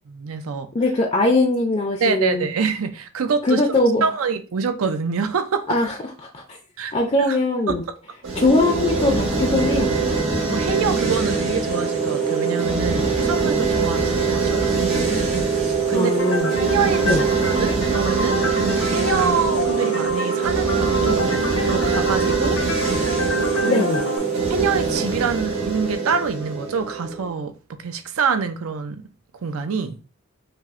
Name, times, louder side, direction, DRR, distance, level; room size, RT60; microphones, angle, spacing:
voice 1, 0.1-0.7 2.0-3.6 4.0-5.6 6.8-6.9 7.3-7.4 10.5-15.2 15.5-16.2 16.6-21.2 21.6-22.6 23.5-23.9 24.5-27.5 27.8-29.1 29.4-30.0, right 5 dB, 85° right, 0.5 m, -26 dB
voice 2, 0.7-2.5 3.4-4.1 5.7-6.6 6.9-7.8 8.4-9.9 15.9-16.5 17.0-17.2 23.7-24.0, left 2 dB, 30° left, 0.4 m, -21 dB
sound 1, 8.2-27.3, right 5 dB, 70° right, 1.4 m, -22 dB
sound 2, 16.2-24.2, left 2 dB, 85° left, 0.9 m, -28 dB
5.4 x 2.0 x 2.4 m
head